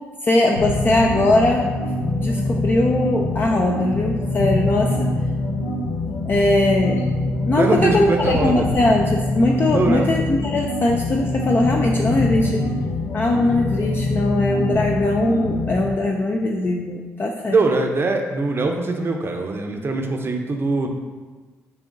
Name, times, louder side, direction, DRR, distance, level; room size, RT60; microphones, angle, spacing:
voice 1, 0.2-1.6 2.1-5.1 6.3-7.1 7.5-12.7 13.1-17.6, left 2 dB, 35° left, 0 dB, 0.5 m, -20 dB
sound 1, 0.6-15.9, left 2 dB, 85° left, 0.7 m, -24 dB
voice 2, 7.5-8.6 9.7-10.1 17.5-20.9, right 3 dB, 40° right, 3 dB, 0.7 m, -22 dB
7.2 x 2.8 x 2.7 m, 1.4 s
supercardioid pair, 55°, 6 cm